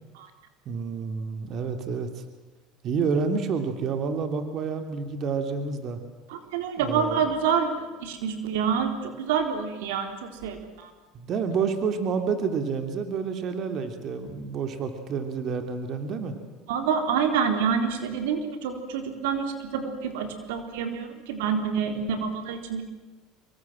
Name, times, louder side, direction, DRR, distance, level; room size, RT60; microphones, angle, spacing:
voice 1, 0.6-2.1 2.8-6.0 6.8-7.2 11.1-16.3, right 5 dB, 50° right, 7 dB, 3.3 m, -29 dB
voice 2, 6.3-10.9 16.7-22.8, right 6 dB, 90° right, 6 dB, 3.9 m, -27 dB
26.5 x 23.5 x 7.7 m, 1.2 s
supercardioid pair, 110°, 0 cm